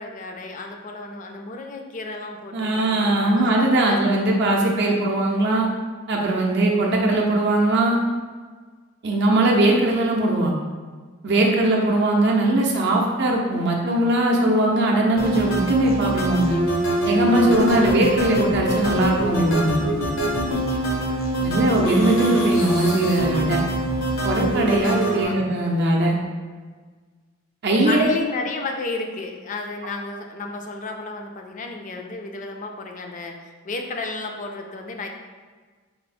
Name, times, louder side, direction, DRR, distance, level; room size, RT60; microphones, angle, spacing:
voice 1, 0.0-3.5 3.8-4.0 12.1-12.5 22.2-22.7 25.0-25.4 27.9-35.1, left 3 dB, 40° left, 3 dB, 0.4 m, -33 dB
voice 2, 2.5-5.7 6.1-8.0 9.0-10.5 11.2-16.6 17.0-19.8 21.4-23.6 24.2-26.2 27.6-28.1, right 1 dB, 55° right, -1 dB, 0.5 m, -20 dB
sound 1, 15.2-25.2, right 1 dB, 75° left, 0.7 m, -24 dB
4.2 x 2.0 x 4.1 m, 1.5 s
head